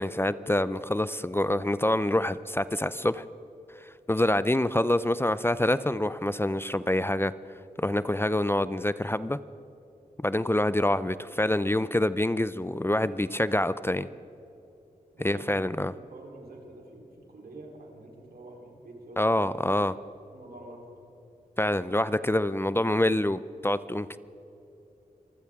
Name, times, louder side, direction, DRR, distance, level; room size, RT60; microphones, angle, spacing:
voice 1, 0.0-3.2 3.8-7.3 7.8-9.4 10.2-14.1 15.2-15.9 19.2-19.9 21.6-24.2, left 1 dB, 15° left, 15 dB, 0.5 m, -26 dB
voice 2, 15.1-19.6 20.3-20.9, right 1 dB, 80° right, -1 dB, 3.8 m, -47 dB
25.0 x 15.5 x 3.7 m, 3.0 s
cardioid pair, 40°, 16 cm